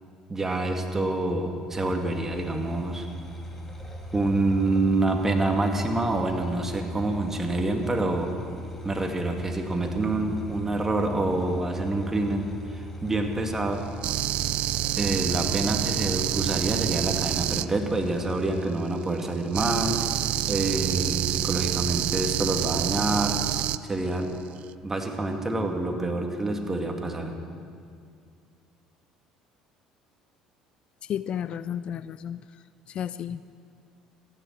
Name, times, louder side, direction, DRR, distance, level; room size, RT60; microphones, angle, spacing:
voice 1, 0.3-3.1 4.1-8.3 8.8-13.8 15.0-20.0 20.5-23.4 23.8-24.3 24.8-27.3, right 2 dB, 20° right, 3 dB, 2.2 m, -27 dB
sound 1, 1.7-18.7, equal, 15° left, 2.3 m, -40 dB
sound 2, 14.0-17.7 19.5-23.8, right 14 dB, 65° right, 0.4 m, -27 dB
voice 2, 31.0-32.4 32.9-33.4, left 9 dB, 50° left, 15 dB, 0.4 m, -32 dB
15.0 x 10.5 x 7.4 m, 2.3 s
hypercardioid pair, 70°, 2 cm